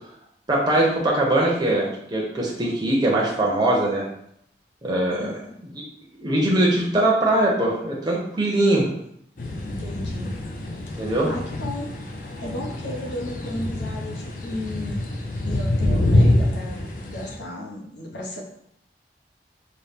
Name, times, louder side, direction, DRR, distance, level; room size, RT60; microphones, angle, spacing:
voice 1, 0.5-4.1 4.8-5.4 6.2-8.9 10.9-11.3, right 1 dB, 25° right, -3 dB, 0.6 m, -21 dB
voice 2, 5.1-5.6 9.6-10.3 11.2-11.9 12.2-15.0 15.4-18.4, left 1 dB, 80° left, -1 dB, 0.9 m, -34 dB
sound 1, 9.4-17.4, left 1 dB, 45° left, 0.5 m, -25 dB
4.1 x 2.1 x 3.5 m, 0.71 s
head